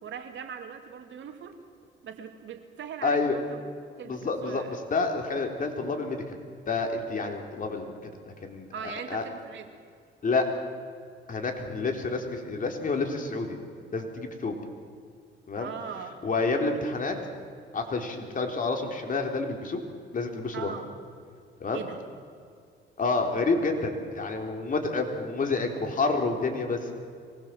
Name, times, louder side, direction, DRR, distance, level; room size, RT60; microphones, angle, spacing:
voice 1, 0.0-1.6 2.0-3.6 4.0-4.8 8.7-9.8 15.6-16.3 20.5-20.9 21.7-22.0, right 7 dB, 70° right, 5 dB, 2.6 m, -40 dB
voice 2, 3.0-3.4 4.1-6.4 6.7-8.0 8.3-8.7 9.1-9.2 10.2-10.5 11.3-13.6 13.9-14.5 15.5-15.7 16.2-17.1 17.7-19.8 20.1-20.7 21.6-21.8 23.0-26.9, left 3 dB, 45° left, 3 dB, 3.8 m, -29 dB
24.5 x 20.0 x 7.7 m, 2.2 s
cardioid pair, 90°, 20 cm